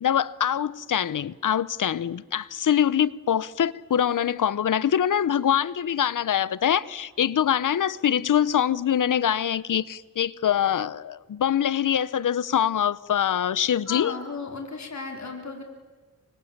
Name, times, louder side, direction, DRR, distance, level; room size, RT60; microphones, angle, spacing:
voice 1, 0.0-14.1, left 9 dB, 85° left, 0.9 m, -24 dB
voice 2, 13.9-15.6, left 4 dB, 60° left, 4.1 m, -35 dB
29.0 x 25.5 x 7.4 m
cardioid pair, 70°, 31 cm